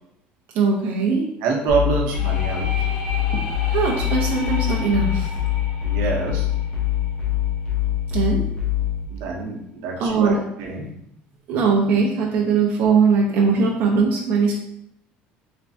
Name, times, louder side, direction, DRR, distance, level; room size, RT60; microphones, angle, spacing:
voice 1, 0.5-1.2 3.7-5.3 8.1-8.4 10.0-10.4 11.5-14.5, right 5 dB, 45° right, -2 dB, 0.5 m, -20 dB
voice 2, 1.4-2.9 5.8-6.5 9.1-10.9, right 4 dB, 85° right, 0 dB, 0.7 m, -26 dB
sound 1, 1.7-9.0, left 12 dB, 20° left, 0.9 m, -24 dB
sound 2, 2.1-7.7, left 1 dB, 70° left, 0.6 m, -35 dB
3.3 x 3.1 x 2.7 m, 0.76 s
cardioid pair, 180°, 4 cm